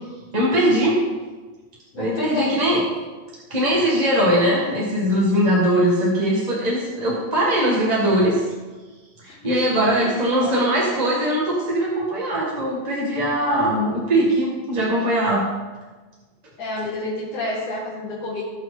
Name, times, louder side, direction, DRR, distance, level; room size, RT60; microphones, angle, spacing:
voice 1, 0.3-1.0 2.0-2.8 3.5-8.4 9.4-15.4, right 1 dB, 20° right, -5 dB, 1.3 m, -20 dB
voice 2, 1.9-2.6 9.2-9.6 10.4-10.5 16.6-18.4, left 2 dB, 85° left, -7 dB, 3.4 m, -29 dB
17.5 x 6.1 x 3.8 m, 1.3 s
omnidirectional pair, 3.3 m